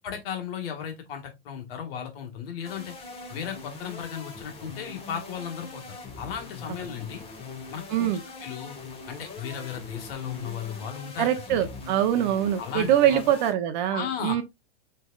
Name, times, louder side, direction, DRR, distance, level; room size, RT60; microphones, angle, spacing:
voice 1, 0.0-2.9 3.3-7.2 7.7-8.8 9.1-11.7 12.6-13.3 13.9-14.4, left 8 dB, 60° left, 1.9 m, -35 dB
sound 1, 2.6-13.5, left 4 dB, 15° left, 1.5 m, -42 dB
voice 2, 11.2-14.4, right 11 dB, 45° right, 0.8 m, -23 dB
6.2 x 3.5 x 2.4 m
hypercardioid pair, 145°, 33 cm